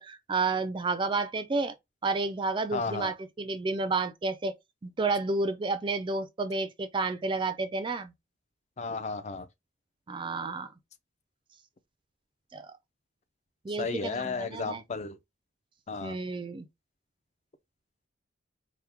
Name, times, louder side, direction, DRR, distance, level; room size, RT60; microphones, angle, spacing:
voice 1, 0.0-1.7 2.0-4.5 4.8-8.1 10.1-10.7 12.5-12.7 13.6-14.8 16.0-16.7, right 3 dB, 25° right, 0.3 m, -31 dB
voice 2, 2.7-3.1 8.8-9.5 13.8-15.2 15.9-16.2, left 4 dB, 35° left, 0.5 m, -33 dB
4.5 x 2.1 x 3.5 m
head